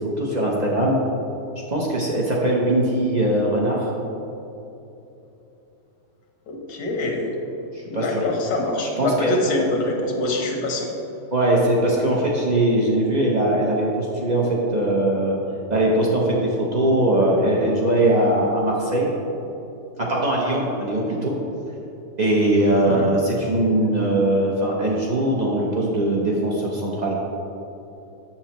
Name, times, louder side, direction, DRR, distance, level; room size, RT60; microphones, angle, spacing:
voice 1, 0.2-1.0 1.7-3.9 7.7-8.2 8.8-9.6 11.3-15.4 15.7-19.1 20.0-21.3 22.2-27.2, right 1 dB, 60° right, -3 dB, 0.4 m, -21 dB
voice 2, 6.5-7.3 7.9-10.9 22.8-23.1, left 2 dB, 85° left, 1 dB, 1.6 m, -25 dB
7.1 x 6.8 x 2.9 m, 3.0 s
omnidirectional pair, 1.8 m